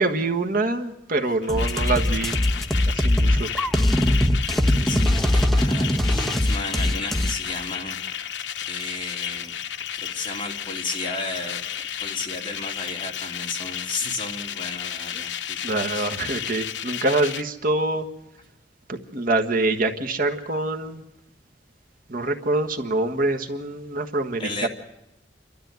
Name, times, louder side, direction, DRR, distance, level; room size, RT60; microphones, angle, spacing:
voice 1, 0.0-2.3 2.9-3.5 15.6-18.1 18.9-21.0 22.1-24.7, right 2 dB, 50° right, 4 dB, 1.5 m, -25 dB
sound 1, 1.4-17.4, left 9 dB, 80° left, 0.8 m, -33 dB
sound 2, 1.5-7.3, left 1 dB, ahead, 1.0 m, -21 dB
voice 2, 4.9-8.2 8.7-9.5 9.9-11.6 12.0-16.1 24.4-24.7, left 3 dB, 30° left, 0 dB, 3.1 m, -34 dB
29.5 x 13.0 x 9.3 m, 0.93 s
head